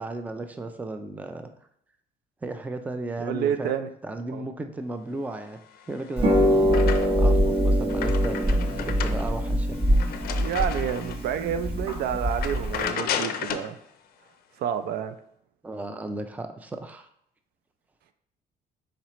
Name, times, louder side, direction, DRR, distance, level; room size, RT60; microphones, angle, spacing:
voice 1, 0.0-1.5 2.4-5.6 5.9-9.8 15.6-17.1, right 2 dB, 10° right, 7 dB, 0.4 m, -35 dB
voice 2, 3.2-3.9 4.3-4.5 10.3-13.8 14.6-15.2, right 9 dB, 70° right, 9 dB, 0.4 m, -29 dB
sound 1, 5.8-7.4 7.7-11.3 11.8-11.9 12.3-13.7, left 8 dB, 65° left, 0.5 m, -34 dB
Harp, 6.2-12.9, equal, 35° right, 0.9 m, -23 dB
4.3 x 4.0 x 3.0 m, 0.71 s
cardioid pair, 110°, 17 cm